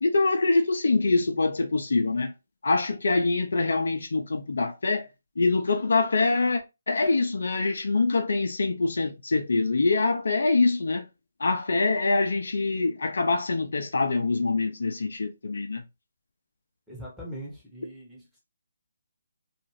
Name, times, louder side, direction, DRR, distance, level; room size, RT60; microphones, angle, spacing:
voice 1, 0.0-2.3 2.6-5.1 5.4-11.0 11.4-15.8, left 3 dB, 70° left, 0.6 m, -24 dB
voice 2, 16.9-18.4, right 1 dB, ahead, 1.0 m, -41 dB
2.5 x 2.5 x 3.1 m
figure-of-eight pair, 150°, 0 cm